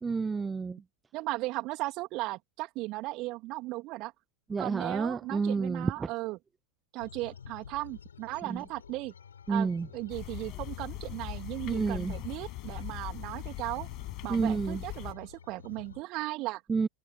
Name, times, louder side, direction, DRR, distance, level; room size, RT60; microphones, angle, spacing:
voice 1, 0.0-0.8 4.5-6.1 8.5-8.6 9.5-9.9 11.7-12.2 14.3-14.8 16.7-16.9, right 4 dB, 15° right, 0.9 m, -30 dB
voice 2, 1.1-4.1 4.6-6.4 6.9-9.1 9.5-13.9 14.2-16.6, right 20 dB, 40° right, 2.7 m, -36 dB
sound 1, 7.0-16.0, left 7 dB, 70° left, 6.1 m, -50 dB
sound 2, 10.1-15.1, left 18 dB, 35° left, 5.1 m, -40 dB
figure-of-eight pair, 90°, 0 cm